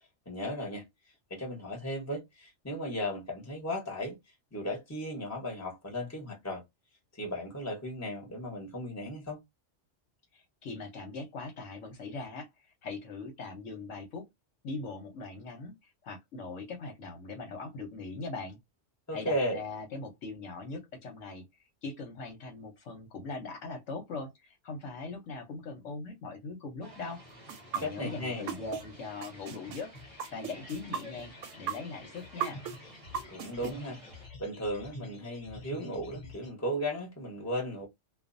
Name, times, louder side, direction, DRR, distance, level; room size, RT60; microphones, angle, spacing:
voice 1, 0.3-0.8 1.3-4.2 4.5-6.6 7.2-9.4 19.1-19.6 27.8-28.5 33.3-34.0 34.4-37.9, equal, 15° left, 1.0 m, -35 dB
voice 2, 10.3-12.5 12.8-14.3 14.6-18.6 19.1-21.4 21.8-27.2 27.7-32.6, left 3 dB, 75° left, 1.1 m, -41 dB
sound 1, 26.8-34.3, equal, 35° right, 0.7 m, -52 dB
sound 2, 27.5-28.8 29.2-33.7, right 8 dB, 80° right, 0.9 m, -36 dB
sound 3, 27.7-36.5, left 2 dB, 35° left, 0.7 m, -50 dB
2.4 x 2.3 x 2.5 m
omnidirectional pair, 1.3 m